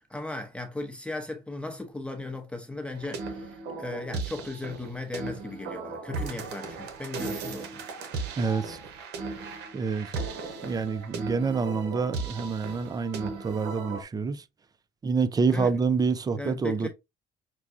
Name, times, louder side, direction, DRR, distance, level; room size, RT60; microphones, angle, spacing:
voice 1, 0.1-7.8 15.5-15.7 16.3-16.9, left 2 dB, 5° left, 0.8 m, -36 dB
sound 1, 2.9-14.0, right 4 dB, 80° right, 0.9 m, -36 dB
voice 2, 8.4-8.8 9.7-10.1 10.6-14.4 15.0-16.9, right 5 dB, 20° right, 0.4 m, -27 dB
5.9 x 2.3 x 2.6 m
cardioid pair, 110°, 17 cm